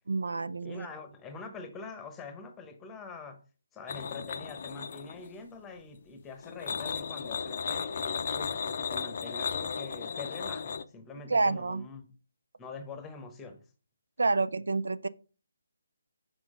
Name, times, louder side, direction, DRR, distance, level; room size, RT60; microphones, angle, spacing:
voice 1, 0.1-0.9 11.3-11.8 14.2-15.1, right 3 dB, 75° right, 0.4 m, -28 dB
voice 2, 0.6-3.4 3.7-12.1 12.6-13.6, left 4 dB, 10° left, 0.9 m, -44 dB
sound 1, 3.9-5.4 6.4-10.8, left 6 dB, 50° left, 0.5 m, -35 dB
6.1 x 4.7 x 3.7 m
figure-of-eight pair, 150°, 0 cm